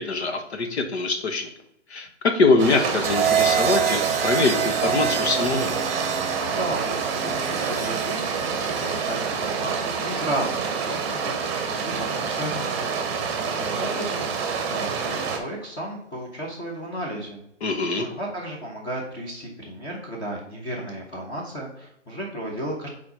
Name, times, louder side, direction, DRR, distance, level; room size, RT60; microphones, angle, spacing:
voice 1, 0.0-1.5 1.9-5.7 17.6-18.1, left 3 dB, 60° left, 5 dB, 1.4 m, -23 dB
sound 1, 2.6-15.4, right 5 dB, 25° right, 1.0 m, -27 dB
sound 2, 3.0-11.2 12.4-12.8, right 9 dB, 55° right, 0.7 m, -28 dB
voice 2, 6.5-13.3 13.6-17.4 17.9-22.9, right 1 dB, 15° left, -4 dB, 1.1 m, -34 dB
4.6 x 4.1 x 5.0 m, 0.75 s
hypercardioid pair, 145°, 36 cm